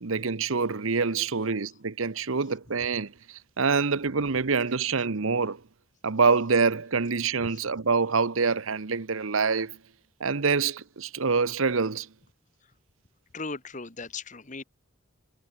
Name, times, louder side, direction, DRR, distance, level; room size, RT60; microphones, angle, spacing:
voice 1, 0.0-5.6 6.0-9.8 10.2-12.1, right 4 dB, 75° right, 0.9 m, -26 dB
voice 2, 13.3-14.6, left 4 dB, 35° left, 1.4 m, -37 dB
head